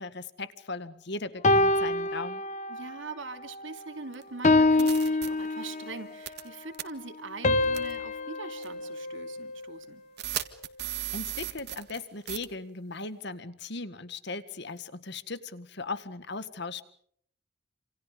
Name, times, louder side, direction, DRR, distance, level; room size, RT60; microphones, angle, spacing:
voice 1, 0.0-2.4 11.1-16.8, left 3 dB, 60° left, 13 dB, 1.9 m, -38 dB
sound 1, 1.4-3.0 3.5-3.8 4.4-6.1 7.4-9.8, left 2 dB, 40° left, 1.1 m, -26 dB
voice 2, 2.7-10.0, right 3 dB, 75° right, 8 dB, 2.9 m, -42 dB
sound 2, 4.1-4.2 4.8-5.3 6.3-6.5 6.7-6.8 7.7-7.9 8.6-8.7 10.2-12.0 12.3-12.4, right 12 dB, 55° right, 1.8 m, -35 dB
28.5 x 28.0 x 5.3 m, 0.64 s
head